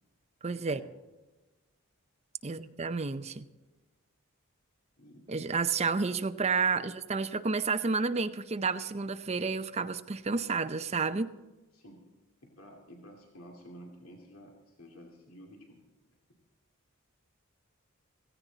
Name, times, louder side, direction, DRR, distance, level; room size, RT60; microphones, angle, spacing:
voice 1, 0.4-0.8 2.4-3.4 5.3-11.3, right 4 dB, 30° right, 10 dB, 0.6 m, -30 dB
voice 2, 5.0-5.3 11.7-12.0 12.4-15.8, equal, 75° left, 1 dB, 2.5 m, -51 dB
16.0 x 15.5 x 4.0 m, 1.2 s
head